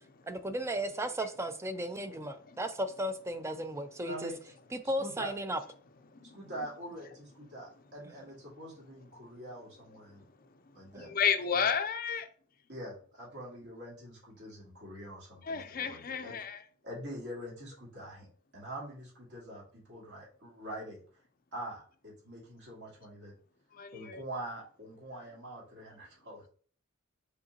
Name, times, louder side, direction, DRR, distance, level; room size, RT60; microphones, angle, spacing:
voice 1, 0.3-4.3 4.7-5.6 8.1-8.2 10.9-11.1, right 1 dB, 15° right, 0.4 m, -35 dB
voice 2, 4.0-4.4 5.0-5.3 6.3-10.2 10.7-11.1 11.5-11.7 12.7-16.4 16.8-21.0 21.5-23.3 23.9-26.5, right 1 dB, 60° right, 2.4 m, -44 dB
voice 3, 11.1-12.2 15.5-16.6 23.8-24.2, left 7 dB, 45° left, 0.5 m, -31 dB
5.1 x 3.7 x 2.8 m
head